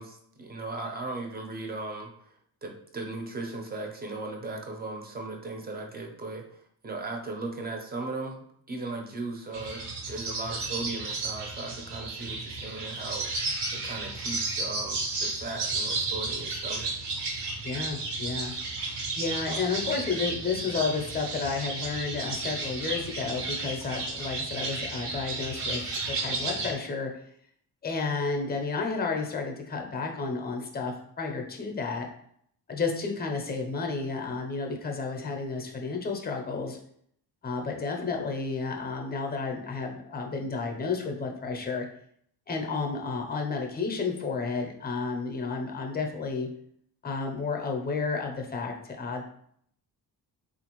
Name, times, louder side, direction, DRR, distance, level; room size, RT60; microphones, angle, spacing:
voice 1, 0.0-2.3 2.6-16.9, right 2 dB, 25° right, 2 dB, 0.5 m, -37 dB
sound 1, 9.5-26.7, right 3 dB, 80° right, 0.9 m, -33 dB
voice 2, 17.6-18.5 19.2-27.1 27.8-32.1 32.7-36.8 37.4-41.9 42.5-46.5 47.0-49.2, left 4 dB, 25° left, 3 dB, 0.5 m, -31 dB
3.7 x 2.5 x 2.9 m, 0.67 s
wide cardioid pair, 145°, 41 cm